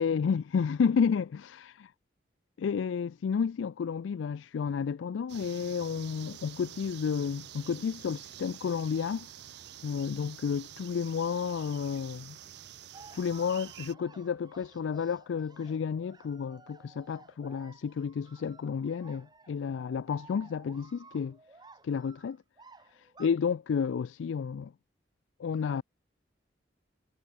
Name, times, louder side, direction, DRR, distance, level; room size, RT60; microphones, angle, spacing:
voice 1, 0.0-1.9 2.6-9.3 9.8-12.4 13.1-21.4 21.8-22.4 22.9-24.7 25.4-25.8, left 6 dB, 85° left, 0.4 m, -31 dB
sound 1, 5.3-13.9, right 10 dB, 60° right, 0.6 m, -48 dB
sound 2, 12.9-23.3, right 3 dB, 25° right, 3.3 m, -56 dB
head